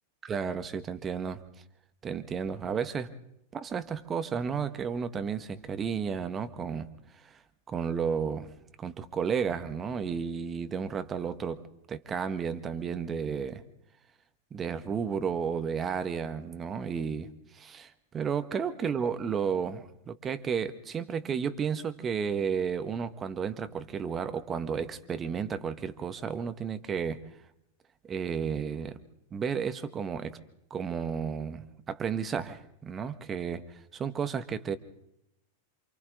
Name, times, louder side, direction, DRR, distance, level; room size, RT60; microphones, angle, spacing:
voice 1, 0.2-1.4 2.0-3.1 3.5-6.9 7.2-7.4 7.7-8.5 8.8-11.6 11.9-13.6 14.5-27.2 28.1-29.0 29.3-30.4 30.7-34.8, right 6 dB, 20° right, 10 dB, 1.6 m, -32 dB
28.5 x 26.5 x 4.0 m, 0.81 s
figure-of-eight pair, 90°, 0 cm